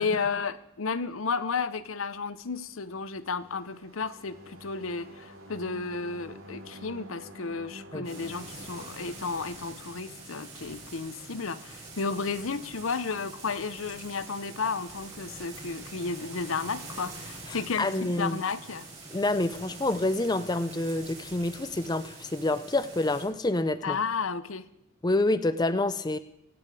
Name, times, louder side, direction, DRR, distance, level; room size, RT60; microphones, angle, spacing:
voice 1, 0.0-18.9 23.8-24.7, left 4 dB, 75° left, 14 dB, 0.8 m, -33 dB
sound 1, 2.7-11.4, equal, 80° right, 2.7 m, -49 dB
sound 2, 8.0-23.2, right 3 dB, 30° right, 7.6 m, -45 dB
voice 2, 17.8-18.4 19.1-24.0 25.0-26.2, left 2 dB, 20° left, 11 dB, 0.5 m, -27 dB
24.5 x 8.8 x 4.9 m, 0.81 s
head